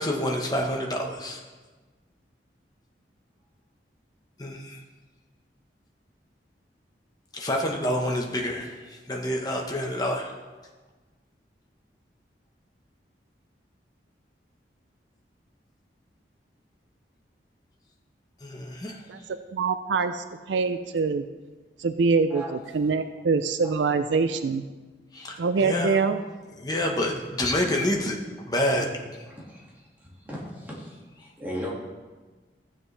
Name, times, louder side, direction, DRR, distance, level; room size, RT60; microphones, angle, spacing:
voice 1, 0.0-1.4 4.4-4.8 7.3-10.3 18.4-19.0 25.1-26.0 26.5-28.2 28.5-28.9, left 1 dB, 20° left, 1 dB, 1.1 m, -28 dB
voice 2, 19.5-21.2 21.8-22.4 22.7-24.7 25.4-26.2, right 4 dB, 85° right, 10 dB, 0.4 m, -24 dB
voice 3, 29.3-29.7 30.0-31.7, equal, 10° right, -6 dB, 2.0 m, -37 dB
15.0 x 7.2 x 3.3 m, 1.3 s
head